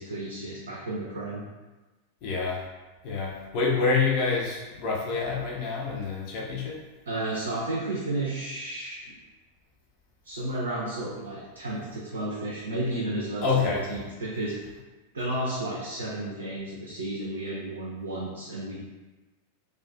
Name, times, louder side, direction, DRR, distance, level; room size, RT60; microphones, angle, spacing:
voice 1, 0.0-1.4 7.1-9.0 10.2-14.6 15.1-18.8, right 1 dB, 70° right, -5 dB, 0.4 m, -32 dB
voice 2, 2.2-2.6 3.0-6.8 13.4-13.8, left 4 dB, 45° left, -3 dB, 0.5 m, -27 dB
2.3 x 2.2 x 2.4 m, 1.2 s
figure-of-eight pair, 90°, 0 cm